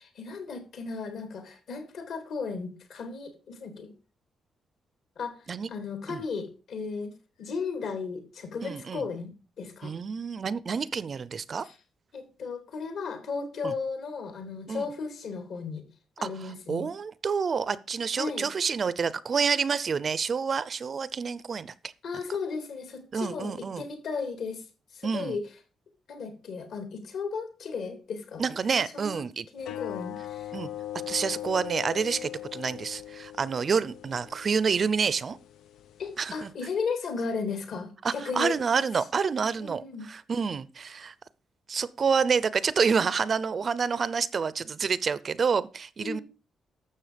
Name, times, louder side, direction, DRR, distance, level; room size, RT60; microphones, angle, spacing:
voice 1, 0.0-3.9 5.2-7.1 7.4-9.9 11.6-11.7 12.1-15.8 16.2-16.9 18.2-18.5 22.0-24.6 24.9-25.5 26.1-28.4 28.9-29.2 29.5-30.5 36.0-38.5 39.6-40.1 46.0-46.2, left 5 dB, 60° left, 3.3 m, -35 dB
voice 2, 8.6-9.0 9.8-11.6 13.6-13.7 14.7-14.9 16.2-21.7 23.1-23.8 25.0-25.4 28.4-29.5 30.5-30.7 31.1-35.4 36.2-36.5 38.0-41.1 41.7-46.2, right 5 dB, 35° right, 0.6 m, -28 dB
sound 1, 29.6-36.5, left 12 dB, 85° left, 0.6 m, -40 dB
12.5 x 7.5 x 5.1 m
cardioid pair, 165°, 0 cm